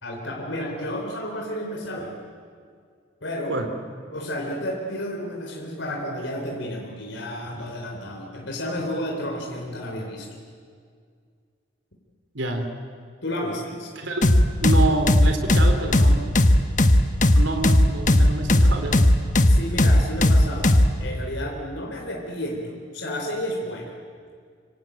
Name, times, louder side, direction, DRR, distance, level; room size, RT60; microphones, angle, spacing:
voice 1, 0.0-2.2 3.2-3.6 4.1-10.3 13.2-13.9 19.5-23.9, equal, 70° left, 0 dB, 3.9 m, -31 dB
voice 2, 12.3-12.7 14.0-14.3 14.6-16.4 17.3-19.0, right 2 dB, 70° right, 4 dB, 3.4 m, -27 dB
sound 1, 14.2-20.9, left 1 dB, 40° left, 1.4 m, -16 dB
26.0 x 25.0 x 9.1 m, 2.1 s
head